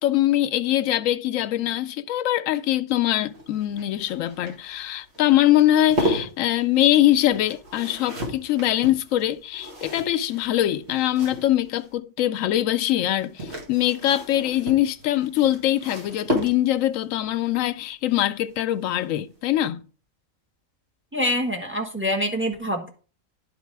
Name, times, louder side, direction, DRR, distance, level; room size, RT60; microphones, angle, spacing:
voice 1, 0.0-19.9, left 13 dB, 80° left, 1.0 m, -23 dB
sound 1, 3.1-11.9 13.1-17.0 18.6-18.9 19.2-19.3, left 1 dB, 50° right, 1.8 m, -33 dB
voice 2, 21.1-22.9, left 1 dB, 10° right, 1.2 m, -25 dB
10.5 x 4.1 x 4.6 m
omnidirectional pair, 1.4 m